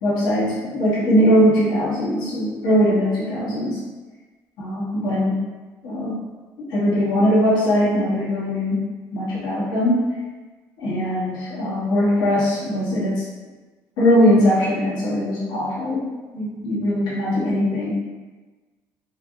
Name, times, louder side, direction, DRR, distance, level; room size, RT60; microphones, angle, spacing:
voice 1, 0.0-3.8 4.6-5.4 5.8-6.2 6.7-8.8 9.1-10.0 10.8-13.2 14.0-16.1 16.3-17.9, equal, 80° left, -8 dB, 1.0 m, -20 dB
3.6 x 3.3 x 2.5 m, 1.3 s
cardioid pair, 130°, 7 cm